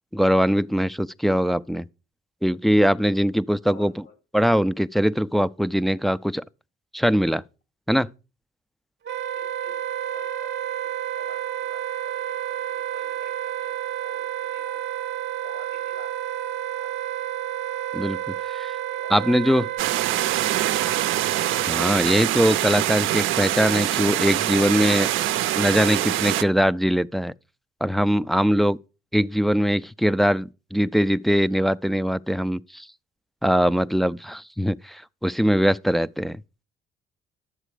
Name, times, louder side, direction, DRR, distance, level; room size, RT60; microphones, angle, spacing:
voice 1, 0.1-1.9 2.4-3.9 4.3-6.4 6.9-7.4 7.9-8.1 17.9-18.7 19.1-19.6 21.6-25.1 25.6-27.3 27.8-28.8 29.1-32.9 33.4-36.4, equal, ahead, 0.4 m, -21 dB
voice 2, 3.5-4.2 9.3-14.8 15.4-16.5 16.8-16.9 18.9-19.6 19.9-20.7, left 5 dB, 75° left, 4.5 m, -50 dB
Wind instrument woodwind instrument, 9.0-21.7, right 11 dB, 60° right, 0.8 m, -30 dB
sound 1, 19.8-26.4, right 14 dB, 90° right, 0.6 m, -24 dB
11.0 x 7.4 x 4.9 m
cardioid pair, 90°, 20 cm